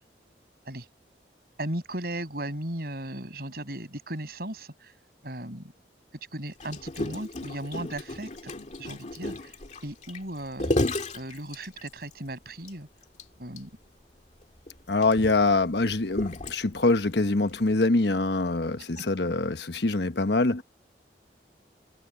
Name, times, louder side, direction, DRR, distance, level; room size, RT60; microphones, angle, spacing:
voice 1, 1.6-4.9 5.2-5.7 6.3-8.5 8.8-9.6 9.8-10.7 11.1-12.9 13.4-13.7 19.0-19.1, right 1 dB, 60° right, 6.8 m, -36 dB
Gurgling, 6.6-12.1 12.6-12.7 13.0-13.2 13.6-13.7 14.4-16.9 17.6-17.7, left 1 dB, 40° left, 2.3 m, -33 dB
voice 2, 14.9-20.6, left 2 dB, 70° left, 1.2 m, -24 dB
head